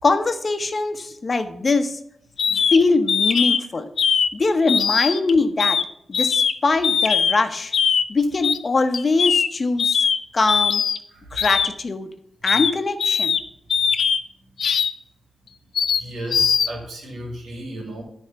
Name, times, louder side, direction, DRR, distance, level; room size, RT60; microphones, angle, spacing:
voice 1, 0.0-2.0 2.7-3.9 4.3-5.8 6.1-7.7 8.1-10.0 10.3-10.8 11.3-12.1 12.4-13.4, left 3 dB, 50° left, 8 dB, 0.9 m, -22 dB
sound 1, 2.4-2.8 3.1-3.6 4.0-4.3 4.7-5.3 5.6-5.8 6.1-6.5 6.8-7.3 7.7-8.0 8.4-8.6 8.9-9.5 9.8-10.2 10.5-11.0 11.4-11.7 12.5-12.7 13.0-13.4 13.7-14.2 14.6-14.9 15.7-16.0 16.3-16.7, left 6 dB, 75° left, 0.4 m, -20 dB
voice 2, 16.0-18.0, right 1 dB, 85° right, 1 dB, 2.0 m, -34 dB
10.0 x 3.5 x 6.8 m, 0.72 s
cardioid pair, 50°, 0 cm